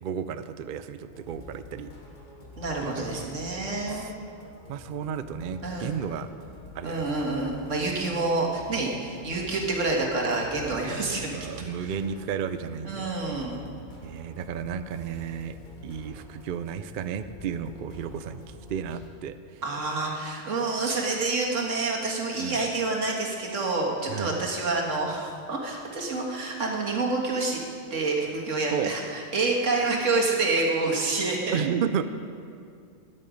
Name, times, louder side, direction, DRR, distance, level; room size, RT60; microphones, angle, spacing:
voice 1, 0.0-1.9 2.8-4.1 4.7-6.3 6.7-7.2 10.6-13.1 14.0-15.6 15.8-18.4 18.7-19.6 22.4-22.6 24.1-24.5 28.7-28.9 31.5-32.0, right 7 dB, 60° right, 11 dB, 0.6 m, -33 dB
sound 1, 1.1-19.1, left 3 dB, 40° left, 1.6 m, -47 dB
voice 2, 2.6-4.1 5.6-6.0 6.8-11.4 11.8-11.9 12.8-13.6 19.6-27.6 27.9-31.6, right 3 dB, 80° right, -1 dB, 2.1 m, -28 dB
13.5 x 9.9 x 5.2 m, 2.4 s
omnidirectional pair, 1.3 m